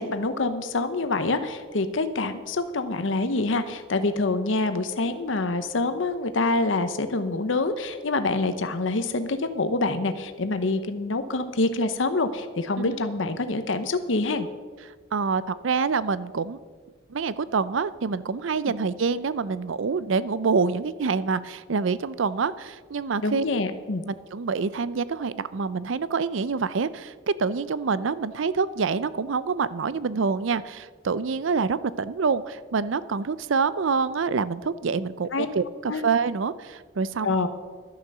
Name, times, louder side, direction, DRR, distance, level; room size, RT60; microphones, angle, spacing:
voice 1, 0.0-14.5 23.2-24.0 35.3-35.5 35.9-36.0 37.2-37.5, left 3 dB, 75° left, 9 dB, 0.8 m, -26 dB
voice 2, 15.1-16.6 17.1-23.4 24.1-37.4, right 5 dB, 80° right, 16 dB, 0.5 m, -26 dB
12.0 x 9.9 x 6.7 m, 1.5 s
head